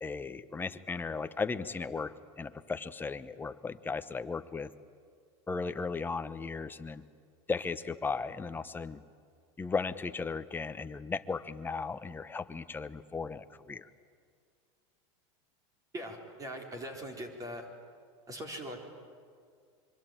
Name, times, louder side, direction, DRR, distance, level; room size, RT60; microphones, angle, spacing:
voice 1, 0.0-4.7 5.5-7.0 7.5-9.0 9.6-13.9, left 4 dB, 15° left, 11 dB, 1.0 m, -36 dB
voice 2, 15.9-17.7 18.3-18.9, equal, 20° right, 3 dB, 4.1 m, -41 dB
25.5 x 24.0 x 9.2 m, 2.1 s
supercardioid pair, 130°, 16 cm